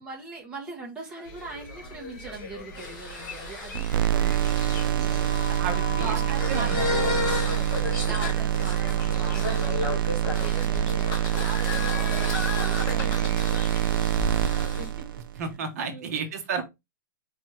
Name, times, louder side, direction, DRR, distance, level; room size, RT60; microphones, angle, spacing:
voice 1, 0.0-5.3 5.6-7.0 7.4-15.1 15.3-15.4 15.7-16.2 16.6-16.7, right 3 dB, 5° right, 1.0 m, -41 dB
sound 1, 1.2-14.1, left 1 dB, 55° left, 2.3 m, -44 dB
sound 2, 1.2-14.9, left 3 dB, 15° left, 3.0 m, -33 dB
sound 3, 3.7-15.4, right 12 dB, 90° right, 0.4 m, -26 dB
voice 2, 5.5-6.2 6.5-6.9 15.3-16.6, right 5 dB, 50° right, 1.0 m, -32 dB
4.4 x 3.3 x 3.2 m
supercardioid pair, 175°, 11 cm